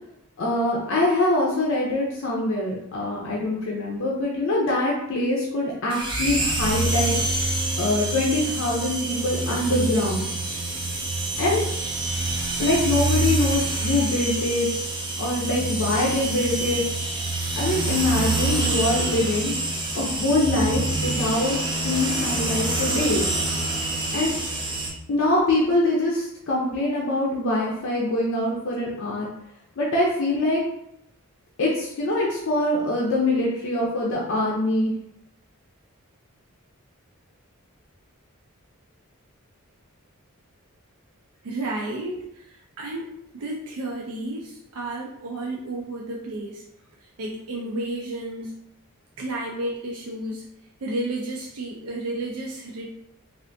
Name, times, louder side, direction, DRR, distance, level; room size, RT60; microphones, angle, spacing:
voice 1, 0.4-7.2 7.8-10.2 11.4-11.6 12.6-14.7 15.2-16.8 17.6-19.5 19.9-23.2 24.1-24.3 25.1-29.3 29.8-30.6 31.6-34.9, left 2 dB, 60° left, -3 dB, 0.5 m, -24 dB
sound 1, 5.9-24.9, right 2 dB, 20° right, 0.4 m, -26 dB
voice 2, 41.4-46.6 47.0-48.6 49.2-50.5 50.8-52.9, right 2 dB, 80° right, -1 dB, 0.4 m, -32 dB
3.3 x 2.4 x 2.6 m, 0.80 s
head